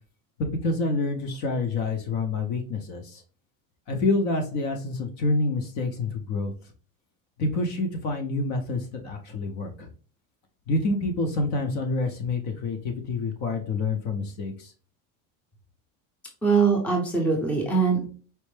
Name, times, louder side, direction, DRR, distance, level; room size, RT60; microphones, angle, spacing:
voice 1, 0.6-3.2 3.9-6.5 7.4-9.9 10.7-14.7, left 3 dB, 45° left, 4 dB, 0.6 m, -27 dB
voice 2, 16.4-18.1, right 5 dB, 5° left, -1 dB, 0.6 m, -22 dB
4.3 x 2.0 x 3.1 m, 0.39 s
cardioid pair, 165°, 42 cm